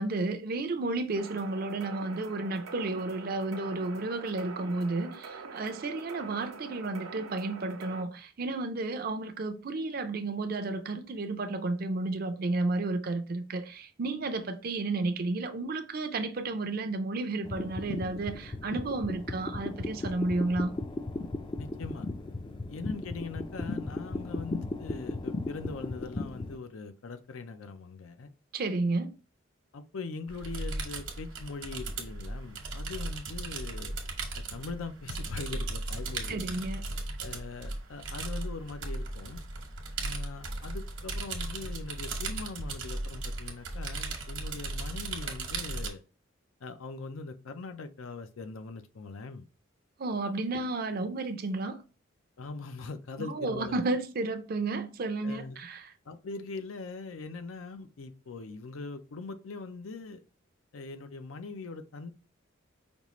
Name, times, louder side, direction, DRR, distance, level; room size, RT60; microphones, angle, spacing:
voice 1, 0.0-20.7 28.5-29.1 36.3-36.8 50.0-51.8 53.2-55.9, right 2 dB, 45° right, 0.5 m, -32 dB
sound 1, 1.2-8.0, right 4 dB, 90° right, 0.6 m, -45 dB
sound 2, 17.4-26.6, left 2 dB, 25° left, 0.4 m, -36 dB
voice 2, 21.6-22.1 22.7-28.3 29.7-33.9 34.4-36.4 37.2-39.4 40.0-46.0 46.6-49.5 52.4-53.8 55.2-55.6 56.1-60.2 60.7-62.1, left 3 dB, 85° left, 0.5 m, -41 dB
sound 3, 30.3-45.9, right 2 dB, 70° right, 1.0 m, -37 dB
5.2 x 2.4 x 3.0 m
head